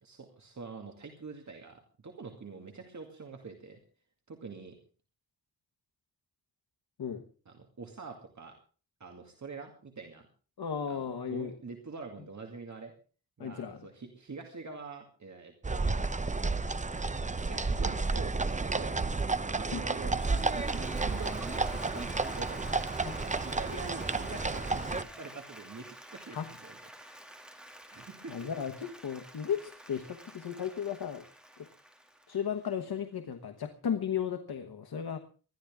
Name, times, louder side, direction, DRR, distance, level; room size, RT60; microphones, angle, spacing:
voice 1, 0.0-3.8 4.3-4.7 7.5-8.6 9.0-10.3 10.9-12.9 13.4-15.9 17.4-19.0 19.5-22.6 22.9-27.2 27.9-28.5, right 4 dB, 50° right, 3 dB, 2.3 m, -45 dB
voice 2, 10.6-11.5 13.4-13.8 19.7-19.9 23.0-23.1 26.3-26.5 28.3-31.2 31.6-31.7 32.3-35.2, left 8 dB, 90° left, 7 dB, 1.3 m, -35 dB
sound 1, 15.6-25.0, right 3 dB, 20° right, 0.7 m, -31 dB
Applause, 19.8-33.0, equal, ahead, 2.5 m, -49 dB
21.0 x 13.5 x 3.7 m, 0.38 s
wide cardioid pair, 115°, 36 cm